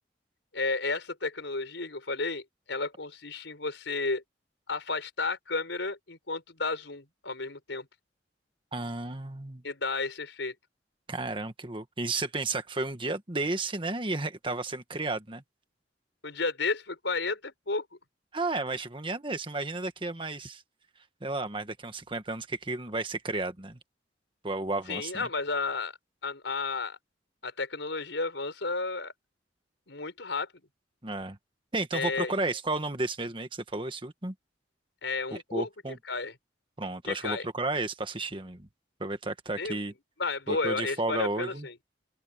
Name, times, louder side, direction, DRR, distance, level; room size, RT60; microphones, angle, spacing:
voice 1, 0.5-4.2 4.7-7.9 9.6-10.5 16.2-17.8 24.9-27.0 27.4-29.1 29.9-30.5 31.9-32.3 35.0-35.7 36.1-36.3 37.1-37.4 39.6-39.8 40.2-41.7, left 3 dB, 85° left, 4.7 m, -32 dB
voice 2, 8.7-9.6 11.1-15.4 18.3-20.6 21.2-23.8 24.4-25.3 31.0-31.4 31.7-34.3 35.3-36.0 36.8-38.7 39.0-39.9 40.5-41.7, right 2 dB, 30° right, 1.6 m, -33 dB
open air
head